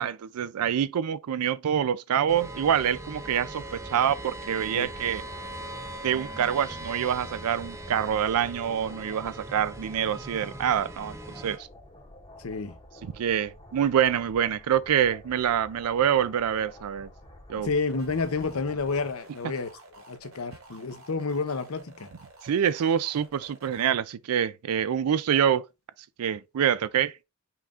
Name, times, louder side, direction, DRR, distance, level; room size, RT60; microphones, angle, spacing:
voice 1, 0.0-5.2 6.0-11.7 13.0-17.1 17.5-17.7 22.4-25.6 26.2-27.2, right 9 dB, 85° right, 0.4 m, -26 dB
sound 1, 2.3-11.6, right 1 dB, 15° right, 0.4 m, -40 dB
sound 2, 4.9-19.1, left 1 dB, 25° left, 1.0 m, -50 dB
voice 2, 12.4-12.7 17.6-19.7 20.0-22.1, left 4 dB, 70° left, 0.7 m, -30 dB
sound 3, 17.9-23.9, right 2 dB, 65° right, 1.6 m, -51 dB
5.7 x 2.4 x 3.5 m
head